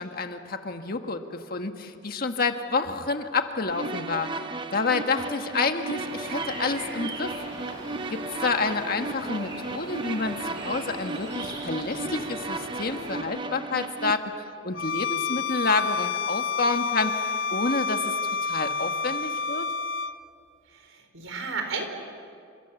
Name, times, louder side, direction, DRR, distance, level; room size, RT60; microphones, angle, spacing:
voice 1, 0.0-4.3 4.7-7.3 8.1-17.1 17.5-19.7, left 3 dB, 45° left, 6 dB, 1.6 m, -29 dB
sound 1, 3.7-14.1, right 3 dB, 25° right, 0.8 m, -35 dB
sound 2, 5.9-13.2, right 2 dB, 60° right, 5.6 m, -40 dB
Bowed string instrument, 14.7-20.2, left 5 dB, 70° left, 0.9 m, -29 dB
voice 2, 20.7-21.8, right 4 dB, 85° right, 5 dB, 4.4 m, -33 dB
29.5 x 26.5 x 7.2 m, 2.4 s
head